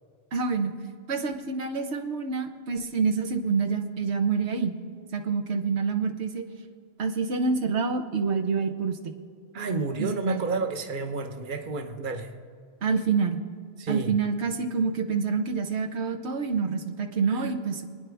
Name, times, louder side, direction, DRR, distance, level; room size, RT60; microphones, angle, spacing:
voice 1, 0.3-0.7 1.1-4.7 5.1-6.5 7.0-9.1 10.0-10.4 12.8-13.4 13.9-17.8, right 5 dB, 90° right, 5 dB, 1.3 m, -27 dB
voice 2, 9.5-12.4 13.8-14.2 17.3-17.5, right 3 dB, 50° right, 6 dB, 1.1 m, -31 dB
26.5 x 9.8 x 3.5 m, 2.2 s
omnidirectional pair, 1.1 m